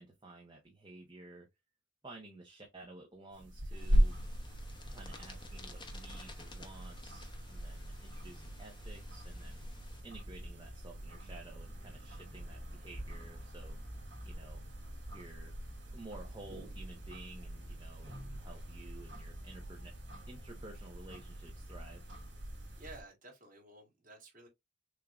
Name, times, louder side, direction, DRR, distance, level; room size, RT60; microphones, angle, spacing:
voice 1, 0.0-1.5 2.0-4.2 4.9-9.6 10.0-13.8 14.2-14.6 15.1-15.5 15.9-19.9 20.3-22.1, right 2 dB, 25° right, 1.0 m, -53 dB
sound 1, 3.3-23.0, equal, 80° right, 3.0 m, -39 dB
sound 2, 3.7-10.0, left 3 dB, 25° left, 0.9 m, -55 dB
voice 2, 22.8-24.5, right 2 dB, 45° right, 2.1 m, -53 dB
6.5 x 2.8 x 2.4 m
head